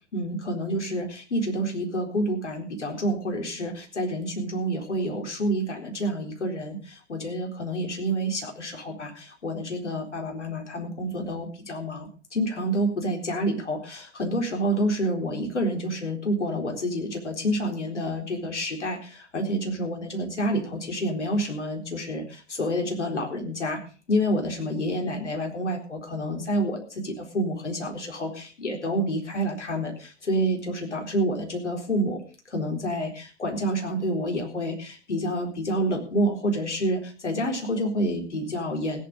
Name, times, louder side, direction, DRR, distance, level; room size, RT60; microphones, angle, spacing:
voice 1, 0.1-23.8 24.1-32.2 32.5-39.0, equal, 75° left, 2 dB, 4.0 m, -28 dB
17.0 x 9.3 x 5.1 m, 0.36 s
figure-of-eight pair, 105°, 35 cm